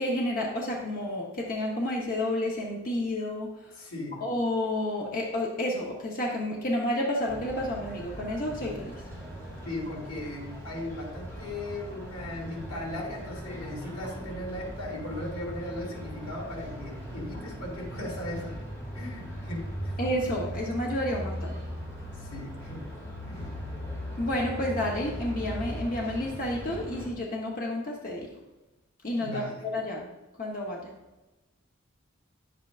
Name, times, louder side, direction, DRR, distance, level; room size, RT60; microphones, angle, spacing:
voice 1, 0.0-3.5 4.2-8.9 20.0-21.6 24.2-28.3 29.0-29.4 29.7-30.1 30.4-30.9, left 1 dB, 40° left, -2 dB, 1.0 m, -30 dB
voice 2, 3.7-4.2 9.6-18.6 18.9-19.9 22.2-22.9 23.3-23.5 29.2-29.7, left 1 dB, 90° left, -1 dB, 2.0 m, -37 dB
sound 1, 7.3-27.1, equal, 10° left, 2.2 m, -39 dB
10.0 x 7.6 x 2.5 m, 1.1 s
head